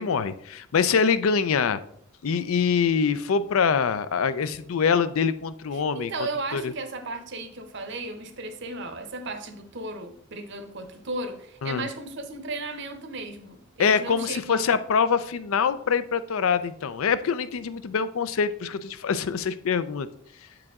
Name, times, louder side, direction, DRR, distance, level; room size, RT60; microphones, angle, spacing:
voice 1, 0.0-1.8 2.2-6.1 6.5-6.7 11.6-11.8 13.8-20.1, left 6 dB, 75° left, 0.4 m, -24 dB
voice 2, 5.7-14.6, right 2 dB, 55° right, 0.8 m, -35 dB
7.6 x 4.9 x 3.6 m
head